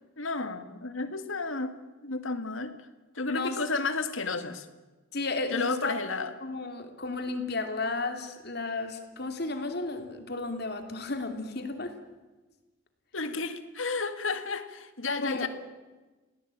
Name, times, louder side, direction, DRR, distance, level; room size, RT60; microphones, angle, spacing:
voice 1, 0.2-1.8 2.0-2.7 3.1-4.7 5.5-6.3 13.1-15.5, left 3 dB, 75° left, 9 dB, 2.0 m, -32 dB
voice 2, 5.1-6.0 6.4-11.9 15.2-15.5, left 3 dB, 50° left, 7 dB, 2.8 m, -33 dB
27.5 x 18.0 x 8.9 m, 1.2 s
head